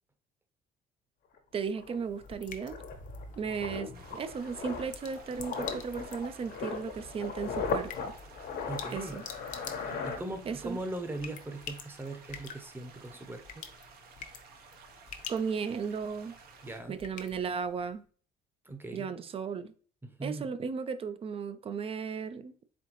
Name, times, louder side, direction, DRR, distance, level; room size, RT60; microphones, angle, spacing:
sound 1, 1.4-1.5 1.8-10.8 11.1-11.3, left 5 dB, 70° left, 1.0 m, -38 dB
sound 2, 1.5-18.0, left 6 dB, 50° left, 0.7 m, -49 dB
voice 1, 1.5-2.8 3.4-8.1 8.9-9.2 10.5-10.8 15.3-16.4 16.9-18.0 18.9-19.7 20.2-22.5, right 6 dB, 35° right, 0.4 m, -35 dB
sound 3, 3.9-16.8, right 5 dB, 65° right, 0.8 m, -55 dB
voice 2, 8.7-9.2 9.8-13.6 16.6-17.0 18.7-19.1 20.0-20.5, right 2 dB, 10° right, 0.8 m, -40 dB
4.3 x 3.6 x 3.0 m
cardioid pair, 110°, 17 cm